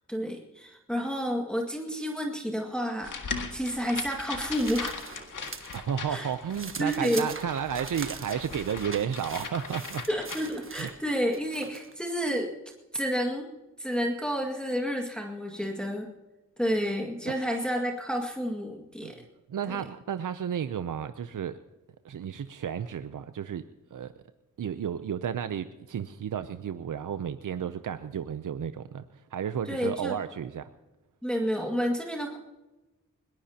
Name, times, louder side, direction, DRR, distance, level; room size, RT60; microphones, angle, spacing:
voice 1, 0.1-5.0 6.1-6.3 6.8-7.3 10.1-12.5 12.9-13.5 13.8-16.1 16.6-19.2 19.7-19.8 29.7-30.2 31.2-32.4, equal, 5° left, 0 dB, 2.0 m, -30 dB
sound 1, 3.0-10.9, left 4 dB, 90° left, 1.8 m, -39 dB
sound 2, 3.6-5.8 6.2-12.0, right 4 dB, 40° right, 1.4 m, -43 dB
voice 2, 5.7-10.0 10.8-10.9 17.3-17.4 19.0-19.1 19.5-21.6 22.0-23.6 23.9-24.1 24.6-30.7, right 8 dB, 85° right, 10 dB, 0.6 m, -32 dB
21.0 x 19.5 x 2.9 m, 1.1 s
wide cardioid pair, 75°, 31 cm